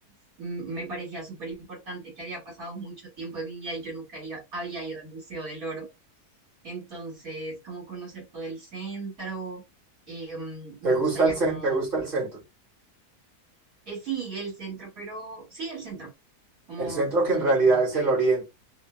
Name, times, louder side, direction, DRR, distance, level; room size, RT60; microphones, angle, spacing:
voice 1, 0.4-5.9 6.6-9.6 10.1-11.8 13.9-16.1 16.7-18.3, right 3 dB, 60° right, 2.7 m, -37 dB
voice 2, 10.8-12.4 16.8-18.5, right 3 dB, 30° right, 2.6 m, -23 dB
4.6 x 2.6 x 2.3 m
omnidirectional pair, 1.7 m